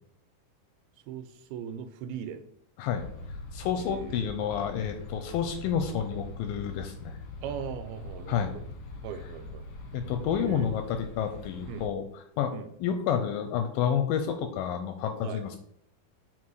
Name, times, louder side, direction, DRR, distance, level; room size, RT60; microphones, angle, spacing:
voice 1, 1.1-2.5 3.8-4.3 7.4-8.6 9.0-9.7 10.3-10.7 11.7-11.9 12.5-12.7 15.2-15.4, right 8 dB, 85° right, 9 dB, 2.6 m, -39 dB
sound 1, 2.9-11.9, left 3 dB, 65° left, 1.6 m, -42 dB
voice 2, 3.5-7.2 8.3-8.5 9.9-12.0 12.4-12.5 12.8-15.6, left 8 dB, 80° left, 6 dB, 2.1 m, -29 dB
8.7 x 4.0 x 4.7 m, 0.68 s
omnidirectional pair, 4.5 m